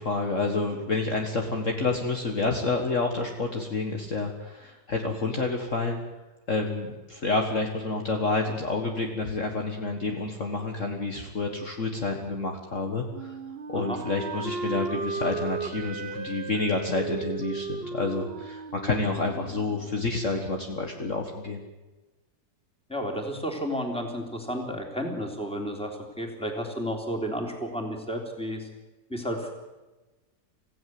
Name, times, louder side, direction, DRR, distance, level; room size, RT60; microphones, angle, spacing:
voice 1, 0.0-6.0 6.5-13.4 13.7-21.6, left 3 dB, 45° left, 2 dB, 2.1 m, -29 dB
Wind instrument woodwind instrument, 13.1-19.9, right 4 dB, 35° right, 1.4 m, -35 dB
voice 2, 22.9-28.7 29.1-29.6, equal, 5° left, 2 dB, 3.5 m, -32 dB
26.5 x 16.0 x 7.8 m, 1.2 s
omnidirectional pair, 2.0 m